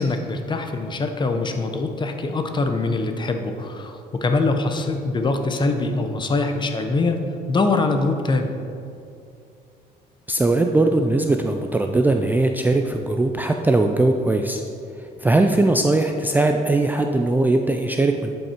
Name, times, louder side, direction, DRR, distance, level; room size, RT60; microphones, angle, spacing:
voice 1, 0.0-7.2 7.5-8.5, left 3 dB, 25° left, 5 dB, 0.8 m, -23 dB
voice 2, 10.3-14.6 15.2-18.3, right 2 dB, 10° right, 4 dB, 0.4 m, -20 dB
11.0 x 5.6 x 4.5 m, 2.5 s
cardioid pair, 110°, 17 cm